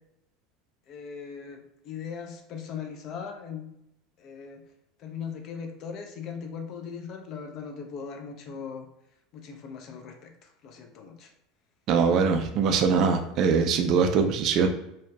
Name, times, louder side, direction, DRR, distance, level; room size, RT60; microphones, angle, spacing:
voice 1, 0.9-3.7 4.2-4.6 5.0-8.9 9.3-11.3, left 6 dB, 50° left, 4 dB, 0.4 m, -39 dB
voice 2, 11.9-14.7, right 5 dB, 50° right, 6 dB, 0.3 m, -22 dB
2.6 x 2.1 x 2.2 m, 0.81 s
hypercardioid pair, 80°, 0 cm